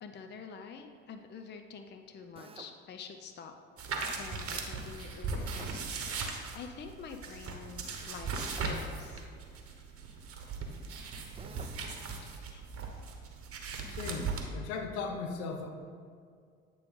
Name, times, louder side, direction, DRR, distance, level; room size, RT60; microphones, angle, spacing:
voice 1, 0.0-3.5 4.2-9.2 12.2-12.7, left 6 dB, 35° left, 6 dB, 0.6 m, -47 dB
Drill, 2.4-2.8 5.4-5.8 8.3-8.8 11.3-11.8, right 5 dB, 20° right, 0.4 m, -50 dB
sound 1, 3.8-14.4, right 4 dB, 45° right, 1.0 m, -38 dB
voice 2, 13.9-15.7, left 4 dB, 65° left, 5 dB, 0.8 m, -37 dB
8.5 x 3.1 x 5.2 m, 2.2 s
hypercardioid pair, 55°, 32 cm